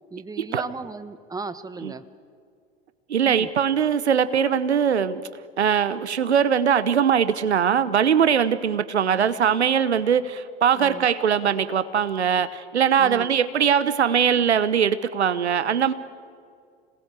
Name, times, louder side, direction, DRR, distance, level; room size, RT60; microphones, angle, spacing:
voice 1, 0.1-2.0 3.2-3.5 10.7-11.1 13.0-13.3, right 3 dB, 10° right, 13 dB, 1.2 m, -36 dB
voice 2, 3.1-5.3 5.6-15.9, right 8 dB, 85° right, 15 dB, 0.9 m, -21 dB
26.5 x 19.0 x 8.2 m, 2.2 s
hypercardioid pair, 80°, 32 cm